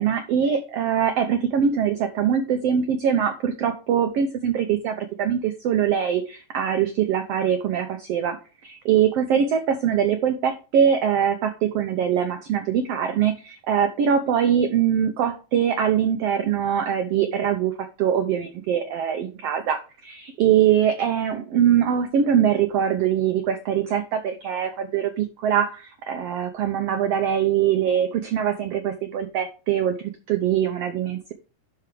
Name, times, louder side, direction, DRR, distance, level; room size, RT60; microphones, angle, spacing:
voice 1, 0.0-31.3, right 8 dB, 85° right, 7 dB, 1.3 m, -23 dB
11.5 x 4.8 x 3.3 m, 0.33 s
omnidirectional pair, 3.8 m